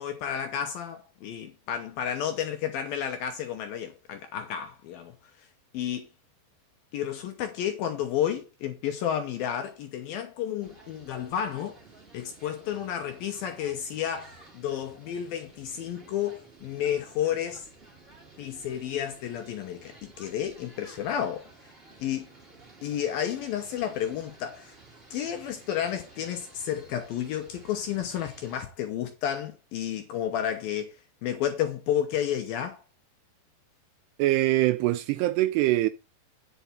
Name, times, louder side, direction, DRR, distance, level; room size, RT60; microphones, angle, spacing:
voice 1, 0.0-5.5 5.7-6.1 6.9-11.8 12.1-17.7 18.4-21.5 22.0-22.3 22.8-24.8 25.1-31.0 31.2-32.8, left 10 dB, 75° left, 2.3 m, -31 dB
sound 1, 10.6-28.6, right 3 dB, 25° right, 1.2 m, -53 dB
voice 2, 34.2-35.9, right 16 dB, 80° right, 2.5 m, -23 dB
9.3 x 5.7 x 5.5 m
omnidirectional pair, 5.1 m